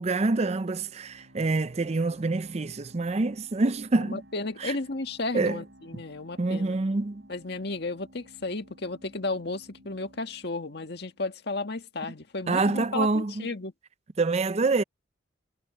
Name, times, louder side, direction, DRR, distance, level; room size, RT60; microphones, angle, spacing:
voice 1, 0.0-4.2 4.6-4.7 5.3-5.6 6.4-7.2 12.5-13.5 14.2-14.8, right 3 dB, 35° right, 0.5 m, -26 dB
sound 1, 0.5-11.9, right 1 dB, 75° right, 6.9 m, -56 dB
voice 2, 4.0-6.8 7.3-13.7, left 3 dB, 60° left, 1.9 m, -33 dB
head